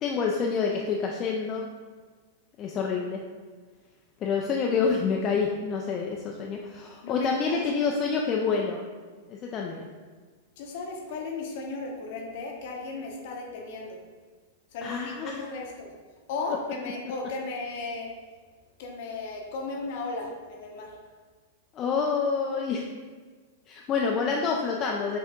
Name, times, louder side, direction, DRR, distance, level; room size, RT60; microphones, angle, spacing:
voice 1, 0.0-1.7 2.6-3.2 4.2-8.8 9.3-9.9 14.8-15.6 21.7-22.9 23.7-25.2, left 5 dB, 30° left, -1 dB, 0.3 m, -27 dB
voice 2, 7.0-7.6 10.6-14.0 14.7-15.9 16.3-18.1 18.8-20.9, left 3 dB, 50° left, 0 dB, 0.7 m, -35 dB
5.6 x 2.6 x 2.3 m, 1.5 s
figure-of-eight pair, 95°, 0 cm